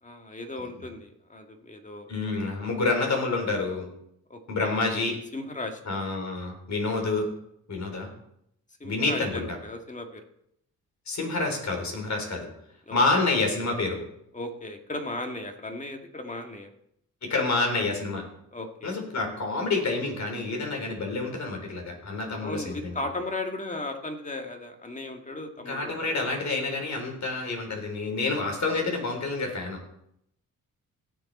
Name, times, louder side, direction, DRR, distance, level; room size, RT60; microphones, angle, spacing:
voice 1, 0.0-2.4 4.3-4.8 5.3-5.8 8.8-10.2 12.9-13.0 14.3-16.7 18.5-19.0 22.4-26.1, left 2 dB, 20° left, 4 dB, 1.9 m, -36 dB
voice 2, 2.1-3.9 4.5-5.2 5.9-7.3 7.7-8.1 8.8-9.6 11.1-12.5 12.9-14.0 17.2-18.2 18.8-22.9 25.7-29.8, left 3 dB, 55° left, 2 dB, 4.0 m, -28 dB
17.0 x 7.0 x 4.2 m, 0.75 s
cardioid pair, 75°, 34 cm